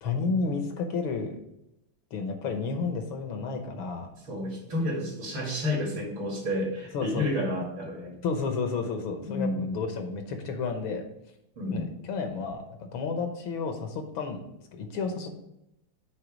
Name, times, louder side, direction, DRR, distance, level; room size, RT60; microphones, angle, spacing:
voice 1, 0.0-1.4 2.1-4.1 6.9-7.3 8.2-11.0 11.7-12.6 12.9-14.4 14.7-15.4, left 4 dB, 75° left, 5 dB, 1.8 m, -31 dB
voice 2, 4.2-8.2 9.2-9.7 11.6-11.9, left 1 dB, 70° right, -1 dB, 2.9 m, -30 dB
8.2 x 3.8 x 5.0 m, 0.84 s
omnidirectional pair, 2.3 m